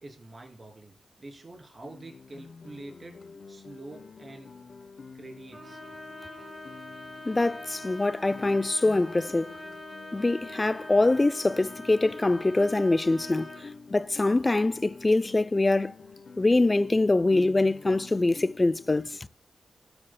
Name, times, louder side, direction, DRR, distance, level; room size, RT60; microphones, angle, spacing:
voice 1, 0.0-3.2 3.5-4.6 5.1-5.8, right 2 dB, 45° right, 2.9 m, -46 dB
Guitar, 1.8-19.2, left 4 dB, 60° left, 0.8 m, -48 dB
Trumpet, 5.5-13.7, left 1 dB, 20° right, 3.2 m, -44 dB
voice 2, 7.3-9.5 10.1-13.5 13.9-15.9 16.4-19.1, left 2 dB, 30° left, 0.5 m, -24 dB
17.5 x 8.0 x 2.2 m
cardioid pair, 60°, 0 cm